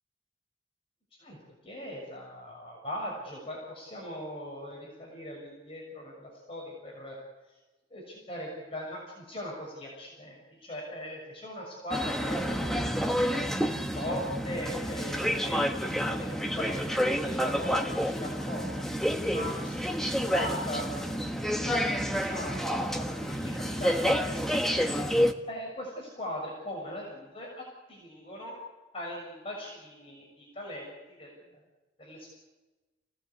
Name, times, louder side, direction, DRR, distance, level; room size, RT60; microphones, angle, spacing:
voice 1, 1.6-7.2 7.5-7.6 7.9-12.8 13.8-22.9 23.2-23.5 23.8-24.8 25.5-28.6 28.9-31.4 32.0-32.3, equal, 30° left, -2 dB, 6.4 m, -40 dB
sound 1, 11.9-25.3, equal, ahead, 1.5 m, -29 dB
29.0 x 18.0 x 8.4 m, 1.2 s
head